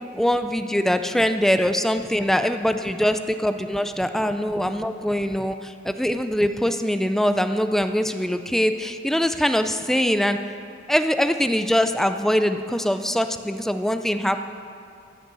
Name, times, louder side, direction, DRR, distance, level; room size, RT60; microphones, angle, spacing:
voice 1, 0.1-10.4 10.9-14.4, equal, ahead, 8 dB, 0.3 m, -23 dB
14.0 x 6.5 x 7.5 m, 2.6 s
head